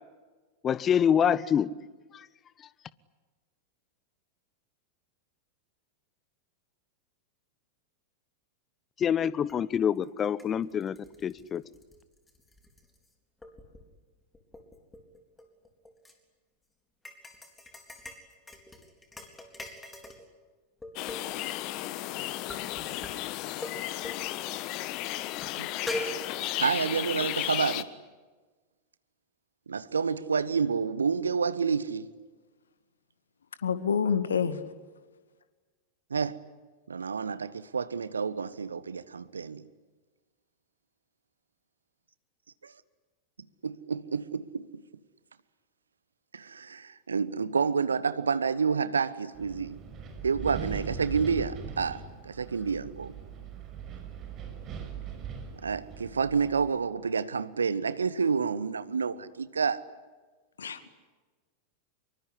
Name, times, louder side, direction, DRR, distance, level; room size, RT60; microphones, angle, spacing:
voice 1, 0.6-1.7 2.1-2.2 9.0-11.0 11.2-11.6, left 8 dB, 25° left, 0.9 m, -26 dB
sound 1, 9.5-9.6 10.0-13.1 13.4-13.9 14.3-16.1 17.1-20.3 20.8-21.5 22.5-23.1 23.6-23.8 24.0-24.2 24.7-24.8 25.4-25.5 25.9-26.7 27.2-27.3, left 1 dB, 10° left, 4.0 m, -41 dB
sound 2, 21.0-27.8, left 15 dB, 40° left, 1.2 m, -34 dB
voice 2, 26.6-27.9 29.7-32.1 36.1-36.4 36.9-39.6 42.6-42.7 43.6-44.8 46.3-49.8 50.2-53.2 55.6-59.9, right 5 dB, 75° right, 1.1 m, -29 dB
voice 3, 33.6-34.6 60.6-60.9, left 6 dB, 70° left, 2.0 m, -27 dB
Wind, 49.3-56.7, right 7 dB, 30° right, 5.7 m, -40 dB
25.5 x 23.5 x 9.9 m
figure-of-eight pair, 90°, 0 cm